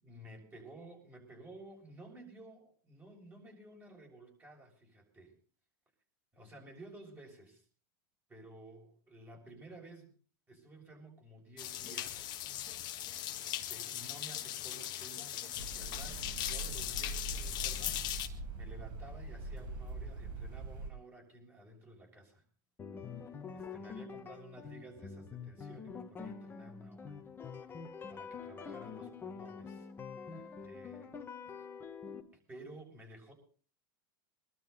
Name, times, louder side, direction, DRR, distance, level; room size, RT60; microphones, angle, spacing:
voice 1, 0.0-5.3 6.3-7.6 8.3-10.1 10.5-12.2 13.4-22.4 23.2-27.2 27.8-29.9 30.3-31.7 32.5-33.3, right 1 dB, 15° right, 1 dB, 6.8 m, -54 dB
sound 1, 11.6-18.3, left 12 dB, 40° left, 1.9 m, -39 dB
sound 2, 15.5-20.9, right 2 dB, 40° right, 5.2 m, -42 dB
sound 3, 22.8-32.2, left 6 dB, 20° left, 2.0 m, -46 dB
24.0 x 12.5 x 4.1 m, 0.41 s
supercardioid pair, 125°, 12 cm